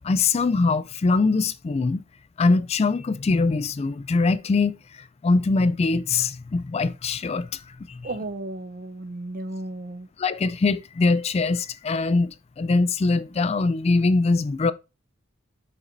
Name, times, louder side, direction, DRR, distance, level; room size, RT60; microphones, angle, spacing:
voice 1, 0.0-2.0 2.4-8.1 10.2-14.7, left 3 dB, 30° left, 0.3 m, -23 dB
voice 2, 8.0-10.1, right 2 dB, 45° right, 0.6 m, -34 dB
7.4 x 6.5 x 2.6 m
head